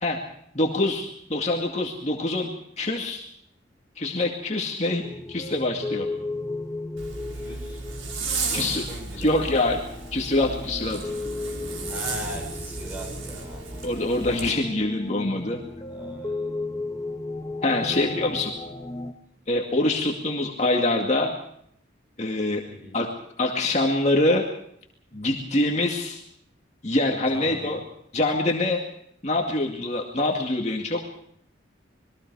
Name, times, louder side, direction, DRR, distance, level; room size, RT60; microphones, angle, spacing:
voice 1, 0.5-3.2 4.0-5.0 5.3-6.1 8.5-8.8 9.2-9.8 10.1-11.0 13.8-15.6 17.6-18.5 19.5-21.3 22.2-22.6 22.9-23.1 23.4-24.4 25.1-26.2 26.8-27.8 28.1-28.8 29.2-31.0, left 2 dB, 35° left, 1 dB, 2.3 m, -24 dB
sound 1, 5.0-19.1, left 2 dB, 15° left, 1.5 m, -35 dB
Zipper (clothing), 7.0-14.5, right 4 dB, 85° right, 5.1 m, -34 dB
voice 2, 7.3-7.9 8.3-9.6 11.9-13.8 14.4-14.6 15.9-16.6 17.8-18.7 22.7-23.0 25.1-25.2 26.0-26.1 27.3-27.8, left 1 dB, 10° right, 1 dB, 6.7 m, -41 dB
27.5 x 22.0 x 4.8 m, 0.69 s
head